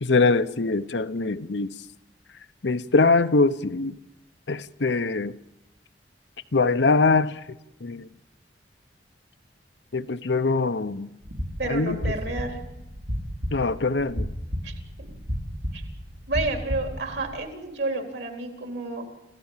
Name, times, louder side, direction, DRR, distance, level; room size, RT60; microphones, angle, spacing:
voice 1, 0.0-1.7 2.6-4.0 4.5-5.3 6.5-7.3 7.8-8.0 9.9-11.1 11.7-12.0 13.5-14.3, left 3 dB, 85° left, 0.9 m, -22 dB
sound 1, 11.2-17.3, equal, 85° right, 5.1 m, -33 dB
voice 2, 11.6-12.6 14.6-14.7 15.7-15.8 16.3-19.0, right 2 dB, 70° right, 4.0 m, -30 dB
27.5 x 15.5 x 7.4 m
head